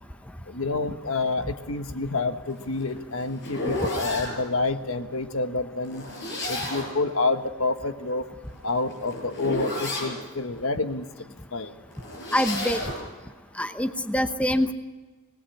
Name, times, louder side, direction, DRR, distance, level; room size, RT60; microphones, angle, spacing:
voice 1, 0.5-6.1 6.4-8.3 8.6-11.1 11.5-11.8, left 3 dB, 80° left, 8 dB, 1.5 m, -28 dB
sound 1, 2.6-4.4 5.8-7.0 8.4-10.2 11.9-13.0, left 1 dB, 55° left, 7.5 m, -31 dB
voice 2, 12.3-12.8 13.6-14.7, equal, 5° left, 9 dB, 0.9 m, -24 dB
25.5 x 19.0 x 5.7 m, 1.3 s
head